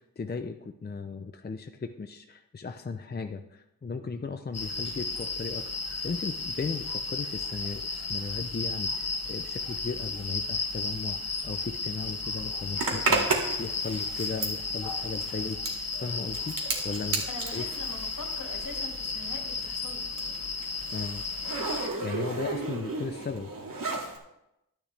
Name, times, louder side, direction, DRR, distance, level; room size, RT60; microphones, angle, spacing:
voice 1, 0.0-17.2 17.5-17.7 20.9-21.2 22.0-23.5, left 4 dB, 30° left, 7 dB, 0.6 m, -36 dB
sound 1, 4.5-21.9, left 3 dB, 45° left, 1.3 m, -34 dB
Zipper (clothing), 12.8-18.9 19.2-24.2, right 3 dB, 70° right, 2.2 m, -33 dB
voice 2, 17.3-20.1, left 3 dB, 65° left, 2 dB, 2.1 m, -43 dB
12.0 x 10.5 x 3.4 m, 0.86 s
wide cardioid pair, 95°, 35 cm